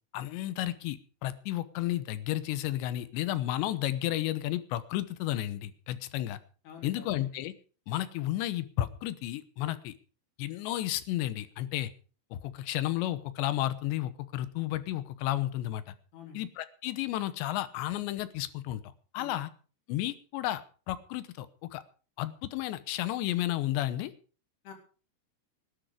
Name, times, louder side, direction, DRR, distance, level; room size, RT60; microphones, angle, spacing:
voice 1, 0.1-6.4 6.8-7.5 7.9-9.9 10.4-11.9 12.3-15.9 16.3-18.8 19.1-19.5 19.9-20.6 20.9-21.8 22.2-24.1, left 14 dB, 75° left, 14 dB, 2.9 m, -32 dB
voice 2, 6.6-7.1 16.1-16.4 19.2-19.4 24.6-24.7, left 6 dB, 60° left, 3 dB, 5.3 m, -47 dB
19.5 x 10.5 x 5.1 m, 0.39 s
omnidirectional pair, 5.6 m